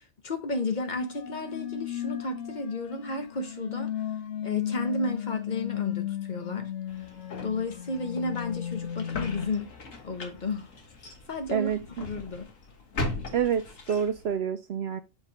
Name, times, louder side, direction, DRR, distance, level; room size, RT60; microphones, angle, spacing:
voice 1, 0.0-3.9 4.4-6.7 7.4-9.7 10.0-10.7 11.3-12.5, left 2 dB, 40° left, 1.0 m, -32 dB
sound 1, 1.0-9.5, left 10 dB, 70° left, 1.1 m, -35 dB
sound 2, 6.9-14.4, left 2 dB, 85° left, 1.7 m, -39 dB
voice 2, 13.3-15.0, right 8 dB, 65° right, 0.7 m, -27 dB
8.1 x 3.2 x 4.0 m
omnidirectional pair, 1.3 m